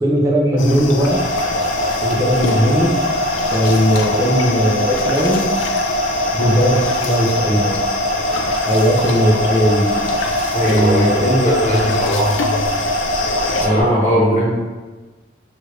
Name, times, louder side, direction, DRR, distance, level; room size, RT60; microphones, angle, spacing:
voice 1, 0.0-1.2 2.0-2.9 3.5-5.5 6.4-7.8 8.7-9.9 10.6-11.5 13.6-14.5, equal, 15° right, -3 dB, 0.5 m, -17 dB
sound 1, 0.6-13.7, left 4 dB, 80° left, 0.3 m, -26 dB
sound 2, 1.0-13.8, equal, 55° right, 0.8 m, -22 dB
voice 2, 10.5-12.5 13.7-14.5, equal, 40° left, -7 dB, 1.1 m, -19 dB
2.9 x 2.4 x 3.1 m, 1.3 s
head